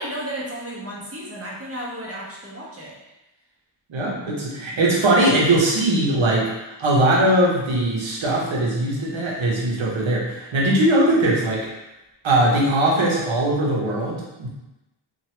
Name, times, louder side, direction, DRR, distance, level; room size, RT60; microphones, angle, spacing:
voice 1, 0.0-2.9, right 1 dB, 30° right, -5 dB, 1.1 m, -33 dB
voice 2, 3.9-6.5 6.8-11.7 12.2-14.5, right 1 dB, 65° right, -4 dB, 1.1 m, -20 dB
2.9 x 2.5 x 2.9 m, 0.98 s
cardioid pair, 50°, 50 cm